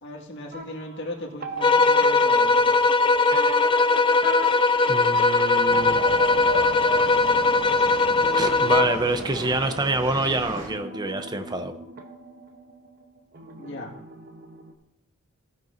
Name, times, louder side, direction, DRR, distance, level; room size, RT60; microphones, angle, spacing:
voice 1, 0.0-2.9 13.6-13.9, left 1 dB, 55° left, 0 dB, 1.9 m, -37 dB
sound 1, 0.5-14.7, right 2 dB, 45° right, 1.0 m, -38 dB
sound 2, 1.6-9.1, left 3 dB, 25° left, 0.3 m, -20 dB
voice 2, 4.8-6.0 8.4-11.7, right 2 dB, 20° right, 9 dB, 0.6 m, -27 dB
sound 3, 5.7-10.7, right 1 dB, 70° right, 2.2 m, -34 dB
15.5 x 9.1 x 2.6 m, 0.83 s
head